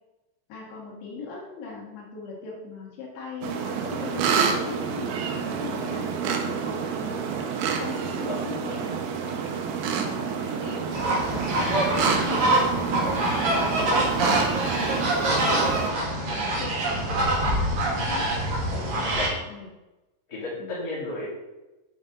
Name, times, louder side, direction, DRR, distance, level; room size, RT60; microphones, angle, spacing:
voice 1, 0.5-7.2 7.8-9.0 9.9-15.7 16.3-18.3 18.7-19.7 20.6-20.8, left 4 dB, 80° left, -4 dB, 3.9 m, -40 dB
sound 1, 3.4-15.9, right 6 dB, 80° right, 2.3 m, -28 dB
sound 2, 10.9-19.3, right 1 dB, 55° right, 1.5 m, -25 dB
voice 2, 20.3-21.3, left 2 dB, 25° left, -7 dB, 2.3 m, -33 dB
7.9 x 5.5 x 3.8 m, 1.0 s
omnidirectional pair, 5.1 m